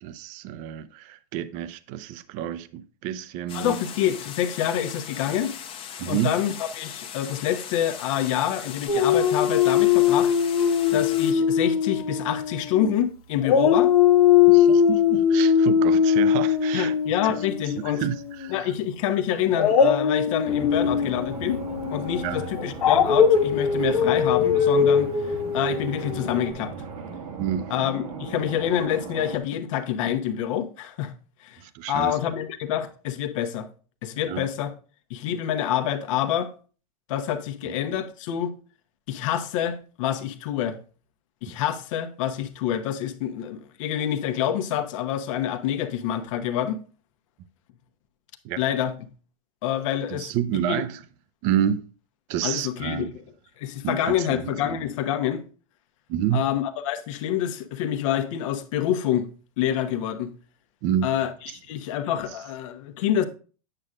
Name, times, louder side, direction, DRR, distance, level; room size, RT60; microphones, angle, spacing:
voice 1, 0.0-3.8 6.0-6.4 10.9-11.0 14.5-16.9 18.0-18.7 22.2-22.5 27.4-27.7 31.6-32.1 34.3-34.5 37.6-37.7 48.4-48.6 50.1-51.0 51.4-51.8 52.3-53.1 53.8-54.8 56.1-56.5 60.8-61.1 61.5-61.6, right 10 dB, 45° right, 0.6 m, -29 dB
voice 2, 3.5-5.5 6.1-10.3 10.9-13.9 16.7-18.0 18.5-21.6 21.9-25.1 25.5-26.7 27.7-31.1 31.4-31.6 31.9-33.7 34.0-34.7 35.1-36.5 37.1-38.5 39.1-40.8 41.4-46.8 48.6-49.1 49.6-50.3 50.7-50.8 52.4-53.1 53.6-55.4 56.3-59.3 59.6-60.3 61.0-63.2, left 10 dB, 60° left, 1.0 m, -27 dB
sound 1, 3.5-11.3, left 8 dB, 30° left, 0.9 m, -39 dB
Dog, 8.9-13.0 13.4-18.4 19.5-26.5, left 7 dB, 80° left, 1.1 m, -21 dB
sound 2, 20.4-29.4, right 4 dB, 70° right, 1.3 m, -37 dB
8.8 x 6.4 x 2.4 m
hypercardioid pair, 115°, 19 cm